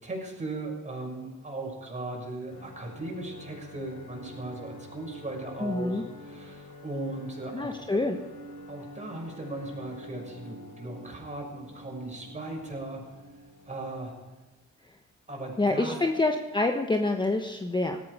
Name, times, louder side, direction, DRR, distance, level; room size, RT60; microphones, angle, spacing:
voice 1, 0.0-8.0 8.7-13.0 13.7-14.1 15.3-16.0, right 2 dB, 25° right, 0 dB, 6.5 m, -37 dB
sound 1, 2.5-14.1, left 1 dB, 80° left, 3.9 m, -47 dB
voice 2, 5.6-6.0 7.5-8.2 15.6-18.0, left 2 dB, 15° left, 4 dB, 1.1 m, -27 dB
17.5 x 14.0 x 4.9 m, 1.2 s
cardioid pair, 90°, 30 cm